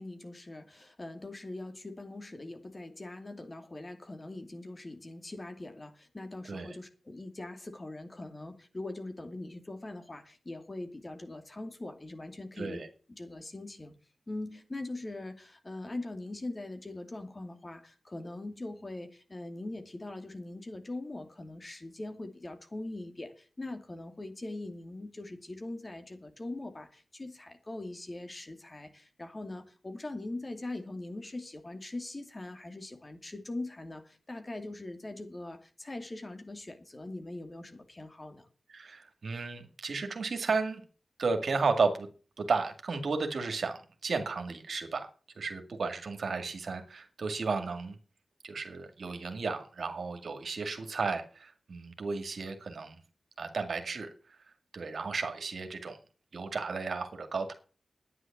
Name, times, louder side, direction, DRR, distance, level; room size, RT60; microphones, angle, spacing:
voice 1, 0.0-12.8 13.2-13.9 14.3-38.5, left 2 dB, 35° left, 2.5 m, -42 dB
voice 2, 12.6-12.9 38.7-40.9 41.2-42.1 42.4-45.1 45.4-48.0 48.4-53.0 53.4-54.4 54.7-56.0 56.3-57.5, right 4 dB, 75° right, 2.1 m, -33 dB
9.8 x 9.7 x 7.2 m
cardioid pair, 50°, 0 cm